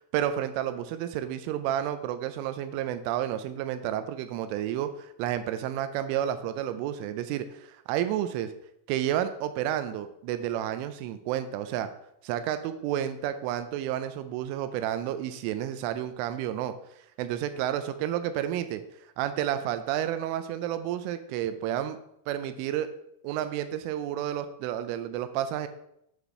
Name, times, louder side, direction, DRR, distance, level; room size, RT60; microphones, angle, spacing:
voice 1, 0.0-8.5 8.9-11.9 12.2-16.7 17.2-18.8 19.2-22.0 22.3-22.9 23.2-25.7, right 11 dB, 85° right, 10 dB, 3.1 m, -31 dB
9.9 x 4.2 x 4.6 m, 0.76 s
omnidirectional pair, 5.6 m